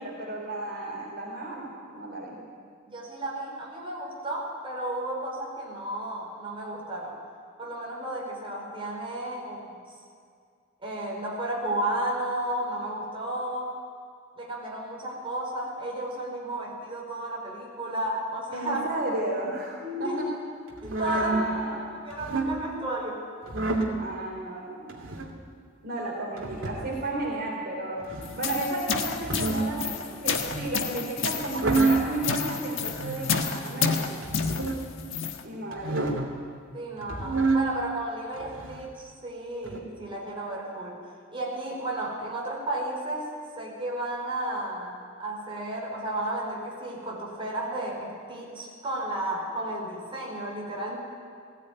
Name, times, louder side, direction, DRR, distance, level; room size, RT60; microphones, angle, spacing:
voice 1, 0.0-2.4 18.5-19.7 20.0-20.3 21.1-21.9 24.0-25.0 25.8-28.0 28.4-34.1 35.4-36.0, right 2 dB, 50° right, -2 dB, 3.6 m, -33 dB
voice 2, 2.9-7.2 7.6-9.6 10.8-13.8 14.4-18.8 19.8-20.2 20.8-21.5 21.8-23.2 35.7-35.8 36.7-41.0 41.3-43.3 43.6-51.0, right 1 dB, 25° right, -2 dB, 4.7 m, -33 dB
sound 1, 20.8-21.4 22.1-22.5 23.5-23.9 24.9-25.3 26.4-26.9 28.0-28.4 29.1-29.7 30.3-30.8 31.4-32.1 32.9-33.3 34.2-34.8 35.7-36.3 37.0-37.6 38.4-38.9 39.6-39.8, right 3 dB, 65° right, 2.8 m, -28 dB
sound 2, 28.2-35.4, left 6 dB, 65° left, 1.5 m, -30 dB
19.0 x 16.0 x 9.3 m, 2.2 s
head